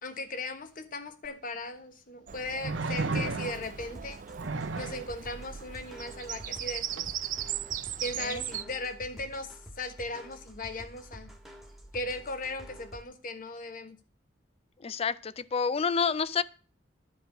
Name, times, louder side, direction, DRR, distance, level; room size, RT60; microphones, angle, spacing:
voice 1, 0.0-4.2 4.8-7.1 8.0-11.3 11.9-14.0, left 2 dB, 45° left, 1.3 m, -38 dB
sound 1, 1.2-1.3 2.6-3.8 4.4-5.1 7.0-7.1, right 3 dB, 80° right, 0.9 m, -33 dB
Bird vocalization bird call bird song, 2.3-8.6, right 10 dB, 45° right, 0.5 m, -38 dB
sound 2, 2.6-13.0, equal, ahead, 1.5 m, -49 dB
voice 2, 14.8-16.4, left 5 dB, 30° left, 0.4 m, -29 dB
10.5 x 4.8 x 8.0 m
head